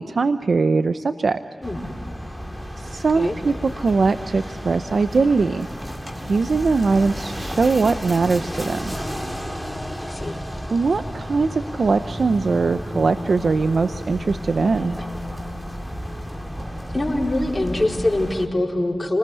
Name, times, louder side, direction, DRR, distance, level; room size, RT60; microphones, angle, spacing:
voice 1, 0.0-1.4 2.8-5.7 6.3-9.0 10.7-15.0, right 4 dB, 75° right, 11 dB, 0.7 m, -21 dB
sound 1, 1.6-18.5, equal, 10° right, 3.2 m, -32 dB
voice 2, 10.0-10.4 16.9-19.2, left 1 dB, 30° left, 0 dB, 4.7 m, -23 dB
29.0 x 20.0 x 9.7 m, 2.4 s
cardioid pair, 45°, 0 cm